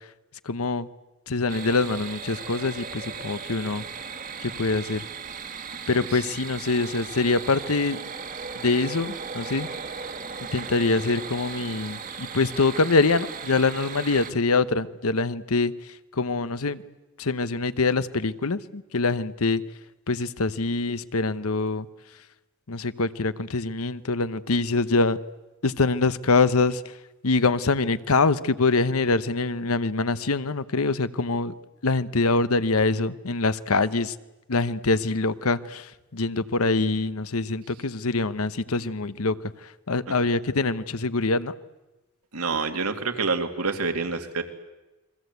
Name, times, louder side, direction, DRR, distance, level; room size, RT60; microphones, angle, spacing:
voice 1, 0.4-0.9 1.3-3.8 4.4-5.0 5.9-8.0 8.6-9.7 10.5-15.7 16.1-16.8 17.2-19.6 20.1-21.9 22.7-25.2 25.6-26.9 27.2-31.5 31.8-34.1 34.5-41.5, left 3 dB, 80° left, 14 dB, 1.0 m, -24 dB
sound 1, 1.5-14.3, right 5 dB, 35° right, 1.5 m, -37 dB
voice 2, 42.3-44.4, right 4 dB, 85° right, 5 dB, 2.5 m, -27 dB
29.5 x 23.0 x 8.1 m, 1.1 s
head